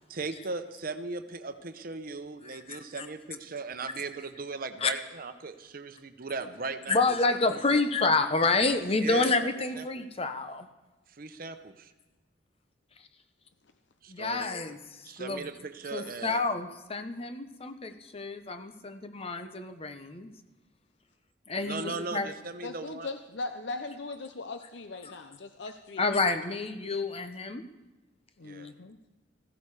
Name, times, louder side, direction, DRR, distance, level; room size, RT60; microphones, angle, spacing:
voice 1, 0.1-7.0 7.4-7.8 9.0-9.4 9.7-9.9 11.1-11.9 14.0-14.5 15.0-16.4 21.7-23.1 28.4-28.7, right 3 dB, 50° right, 10 dB, 0.9 m, -38 dB
voice 2, 2.7-3.1 4.8-4.9 6.9-10.7 14.1-14.8 15.2-15.5 15.9-20.3 21.5-22.3 26.0-27.6, left 3 dB, 35° left, 8 dB, 0.9 m, -28 dB
voice 3, 22.6-26.1 28.4-29.0, left 3 dB, 70° left, 8 dB, 0.7 m, -39 dB
15.5 x 15.0 x 4.9 m, 1.1 s
head